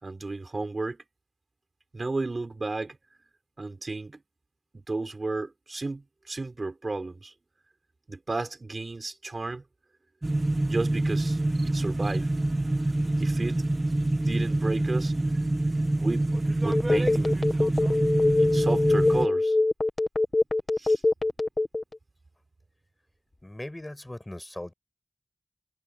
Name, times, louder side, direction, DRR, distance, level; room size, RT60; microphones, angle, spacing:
voice 1, 0.0-1.0 1.9-3.0 3.6-4.2 4.7-7.3 8.1-9.6 10.6-11.4 11.6-12.3 13.2-13.6 14.0-15.1 16.0-16.3 16.6-17.8 18.4-19.6 20.8-21.0, right 3 dB, 70° right, 5.3 m, -33 dB
sound 1, 10.2-19.3, right 2 dB, 45° right, 1.7 m, -26 dB
Telephone, 16.7-21.9, left 2 dB, 60° left, 1.5 m, -23 dB
voice 2, 23.4-24.7, left 1 dB, 25° left, 6.4 m, -39 dB
wide cardioid pair, 60°, 0 cm